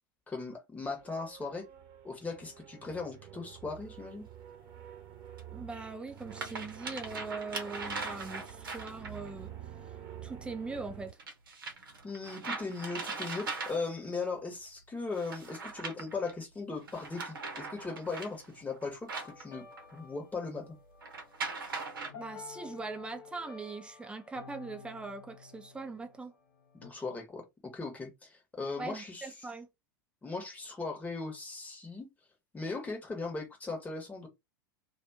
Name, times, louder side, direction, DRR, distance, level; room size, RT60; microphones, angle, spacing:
voice 1, 0.3-1.6 2.0-4.2 12.0-19.7 19.9-20.8 26.7-29.5 30.2-32.1 32.5-34.3, left 3 dB, 15° left, 1.1 m, -38 dB
sound 1, 1.0-11.1, right 10 dB, 45° right, 0.9 m, -49 dB
sound 2, 3.7-3.8 5.4-5.5 6.1-9.3 11.2-14.1 15.1-16.3 16.8-20.0 21.0-22.1, right 4 dB, 75° right, 0.8 m, -40 dB
voice 2, 5.5-9.5 10.2-11.2 22.1-26.3 28.8-29.7, right 3 dB, 10° right, 0.5 m, -41 dB
sound 3, 19.2-26.9, left 6 dB, 65° left, 0.8 m, -52 dB
2.5 x 2.3 x 2.7 m
figure-of-eight pair, 90°, 12 cm